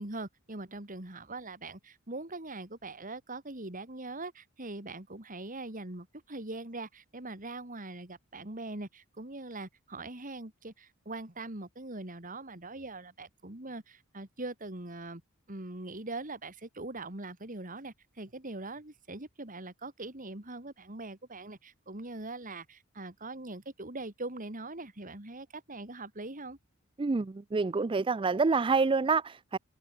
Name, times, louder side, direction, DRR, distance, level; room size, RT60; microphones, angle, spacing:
voice 1, 0.0-15.2 15.5-26.6, right 2 dB, 40° right, 2.9 m, -42 dB
voice 2, 27.0-29.6, right 4 dB, 25° right, 0.4 m, -27 dB
head